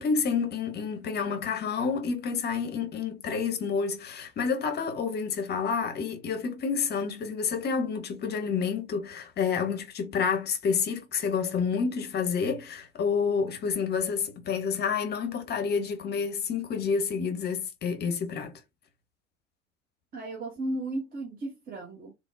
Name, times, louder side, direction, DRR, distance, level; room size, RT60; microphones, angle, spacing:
voice 1, 0.0-18.6, left 6 dB, 30° left, 0.8 m, -29 dB
voice 2, 20.1-22.1, right 1 dB, 25° right, 0.8 m, -34 dB
3.4 x 2.0 x 2.5 m
figure-of-eight pair, 70°, 36 cm